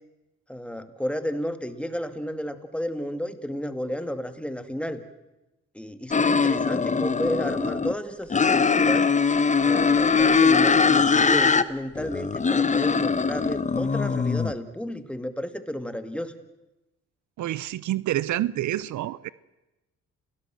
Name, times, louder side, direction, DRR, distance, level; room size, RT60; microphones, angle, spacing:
voice 1, 0.5-5.0 5.7-9.1 9.6-16.3, equal, 5° left, 9 dB, 2.2 m, -32 dB
sound 1, 6.1-7.9 8.3-11.6 12.0-14.5, left 5 dB, 25° left, 1.0 m, -21 dB
voice 2, 17.4-19.3, right 14 dB, 75° right, 19 dB, 0.7 m, -28 dB
29.0 x 17.5 x 7.7 m, 1.0 s
cardioid pair, 90°, 30 cm